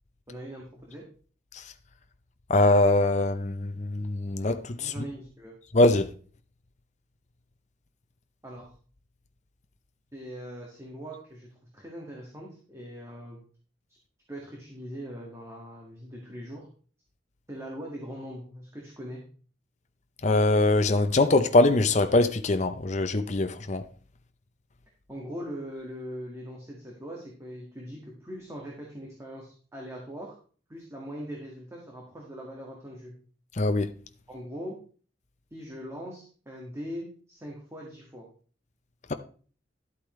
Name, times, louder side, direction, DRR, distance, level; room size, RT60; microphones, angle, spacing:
voice 1, 0.3-1.1 4.8-5.5 8.4-8.7 10.1-13.4 14.3-16.7 17.5-19.2 25.1-30.3 30.7-33.1 34.3-34.8 35.5-38.3, equal, 15° right, 1.8 m, -41 dB
voice 2, 2.5-4.9 5.7-6.1 20.2-23.9 33.6-33.9, left 2 dB, 40° left, 0.7 m, -22 dB
12.0 x 8.3 x 3.2 m
head